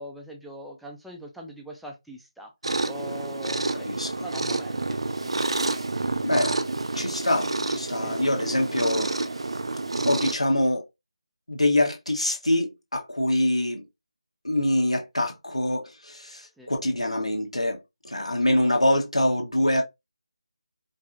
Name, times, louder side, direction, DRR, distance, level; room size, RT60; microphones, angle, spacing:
voice 1, 0.0-2.5 2.9-3.9 4.2-5.0 8.0-8.3 16.6-16.7, equal, ahead, 0.4 m, -41 dB
sound 1, 2.6-10.4, right 2 dB, 55° right, 0.5 m, -29 dB
voice 2, 3.7-4.1 6.2-6.6 6.9-9.1 10.0-10.9 11.5-13.8 14.4-19.8, left 1 dB, 80° left, 1.2 m, -25 dB
4.6 x 2.7 x 2.4 m
figure-of-eight pair, 155°, 3 cm